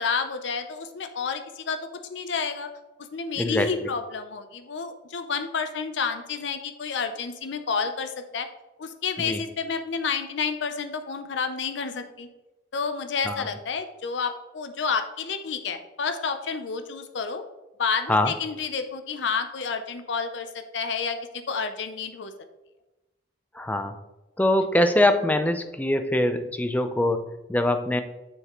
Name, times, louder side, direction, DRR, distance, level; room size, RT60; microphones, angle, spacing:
voice 1, 0.0-1.8 2.1-2.7 3.1-8.5 8.8-12.3 12.7-17.4 17.8-22.3, left 5 dB, 75° left, 9 dB, 0.5 m, -30 dB
voice 2, 3.4-3.9 9.2-9.4 13.3-13.5 18.1-18.3 23.5-23.9 24.4-28.0, left 1 dB, 10° left, 8 dB, 0.5 m, -23 dB
7.1 x 6.6 x 3.0 m, 1.0 s
head